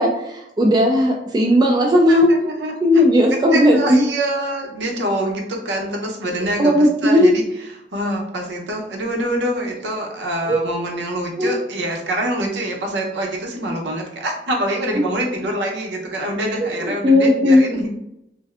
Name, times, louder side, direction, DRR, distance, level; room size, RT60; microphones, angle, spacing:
voice 1, 0.0-2.3 2.8-4.0 6.6-7.4 10.5-10.6 11.4-11.6 15.0-15.1 16.6-17.6, left 1 dB, 25° right, 0 dB, 0.3 m, -16 dB
voice 2, 2.1-2.7 3.3-7.4 7.9-17.9, right 1 dB, 75° right, 1 dB, 0.7 m, -25 dB
3.2 x 2.6 x 2.4 m, 0.83 s
head